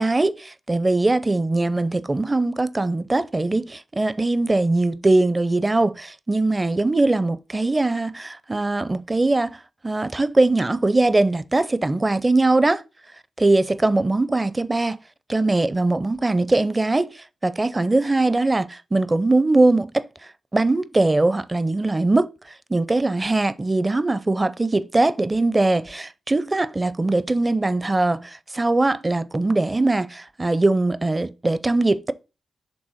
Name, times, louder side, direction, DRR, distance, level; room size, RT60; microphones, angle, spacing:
voice 1, 0.0-9.6 9.8-12.8 13.4-15.0 15.3-17.1 17.4-20.1 20.5-22.3 22.7-32.1, right 2 dB, 25° right, 0.5 m, -21 dB
5.3 x 3.5 x 5.6 m
supercardioid pair, 50°, 0 cm